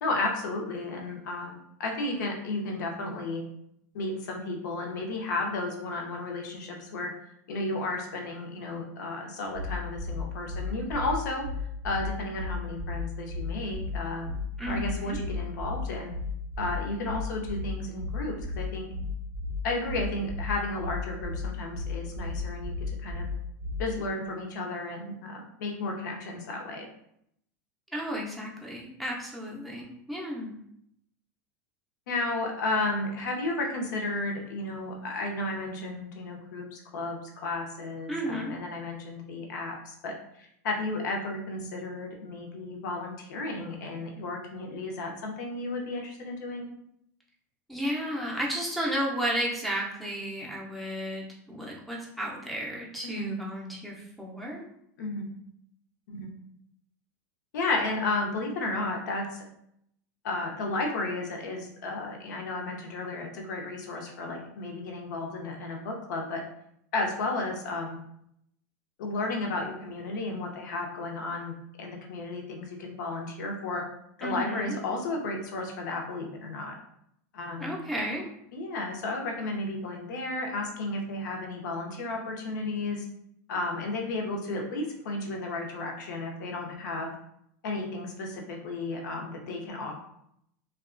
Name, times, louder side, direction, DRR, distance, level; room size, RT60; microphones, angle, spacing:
voice 1, 0.0-3.4 3.9-7.1 7.5-11.4 11.8-14.3 14.7-16.1 16.6-18.9 19.6-22.7 23.0-23.3 23.8-26.9 32.1-46.7 53.0-53.3 55.0-55.3 56.1-56.3 57.5-59.3 60.2-66.4 66.9-68.0 69.0-73.9 74.2-76.7 77.3-77.7 78.5-83.1 83.5-87.1 87.6-90.0, left 2 dB, 85° left, 1 dB, 0.6 m, -33 dB
sound 1, 9.5-24.0, left 3 dB, 60° right, 0.4 m, -34 dB
voice 2, 14.6-15.2 27.9-30.6 38.1-38.5 47.7-54.6 74.2-74.8 77.6-78.2, equal, ahead, -3 dB, 0.4 m, -33 dB
2.7 x 2.2 x 2.4 m, 0.73 s
supercardioid pair, 160°, 9 cm